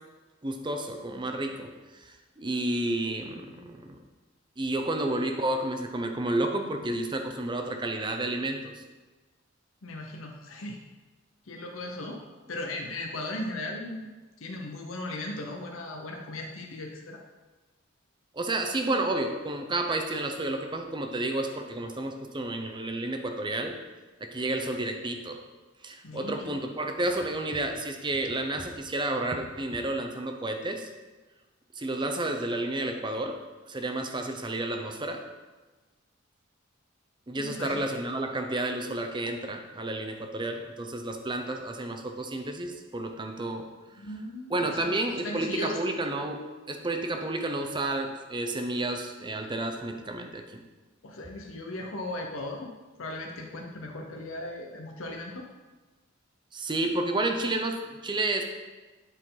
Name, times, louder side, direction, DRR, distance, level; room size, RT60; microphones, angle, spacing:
voice 1, 0.4-4.0 4.6-8.8 18.3-23.7 24.2-25.4 25.8-30.9 31.7-33.4 33.7-35.2 37.3-43.7 44.5-46.4 46.7-50.6 56.5-58.5, right 2 dB, 25° right, 4 dB, 0.7 m, -31 dB
voice 2, 9.8-10.8 11.5-12.2 12.5-14.1 14.4-17.2 26.0-26.5 37.4-37.8 44.0-46.0 51.0-52.7 53.0-55.5, left 1 dB, 90° left, 1 dB, 0.9 m, -37 dB
10.5 x 4.5 x 3.9 m, 1.2 s
head